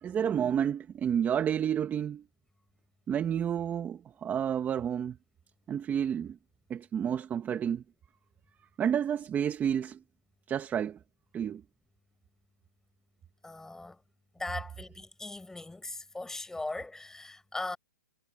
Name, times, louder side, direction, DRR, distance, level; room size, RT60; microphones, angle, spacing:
voice 1, 0.0-2.2 3.1-5.2 5.7-6.4 6.7-7.8 8.8-10.0 10.5-11.0 11.3-11.6, right 8 dB, 15° right, 1.8 m, -30 dB
voice 2, 13.4-14.0 14.3-17.8, left 2 dB, 5° left, 7.0 m, -39 dB
hypercardioid pair, 145°, 11 cm